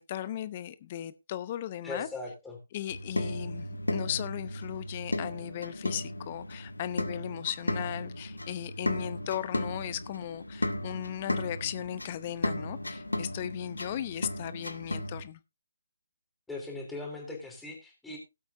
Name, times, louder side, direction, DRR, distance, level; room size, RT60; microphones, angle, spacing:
voice 1, 0.0-2.1 2.7-15.4, left 11 dB, 30° left, 0.7 m, -37 dB
voice 2, 1.8-2.6 16.5-18.2, left 3 dB, 5° left, 3.5 m, -39 dB
sound 1, 2.9-15.2, left 1 dB, 80° left, 1.4 m, -35 dB
18.0 x 8.2 x 2.7 m
figure-of-eight pair, 145°, 0 cm